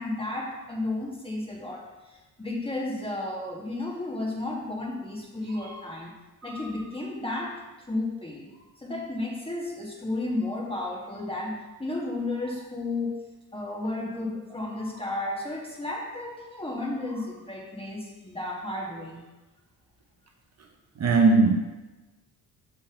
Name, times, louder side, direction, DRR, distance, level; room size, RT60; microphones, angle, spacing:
voice 1, 0.0-6.1 6.4-8.5 8.8-13.2 13.5-19.2, left 2 dB, 15° left, -1 dB, 1.5 m, -33 dB
voice 2, 21.0-21.6, right 3 dB, 40° right, 2 dB, 0.7 m, -19 dB
6.7 x 3.6 x 5.7 m, 1.1 s
cardioid pair, 100°, 40 cm